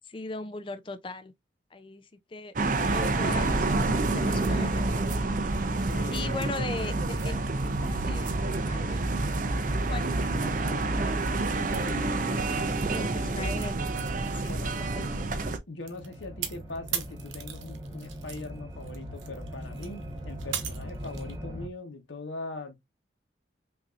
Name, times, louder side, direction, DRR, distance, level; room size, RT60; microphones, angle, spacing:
voice 1, 0.1-1.3 1.7-2.5 2.9-3.8 4.1-5.1 6.1-9.1 9.9-12.0 12.9-13.8 14.3-15.1, left 3 dB, 25° left, 0.4 m, -39 dB
sound 1, 2.6-15.6, right 2 dB, 45° right, 0.6 m, -28 dB
voice 2, 3.7-4.6 5.8-6.4 11.7-13.5 14.5-14.7 15.7-22.8, left 2 dB, 85° left, 1.1 m, -41 dB
sound 2, 15.8-21.7, equal, 20° right, 0.9 m, -40 dB
sound 3, 15.9-18.5 18.8-21.3, right 9 dB, 85° right, 1.0 m, -37 dB
5.8 x 2.7 x 2.4 m
head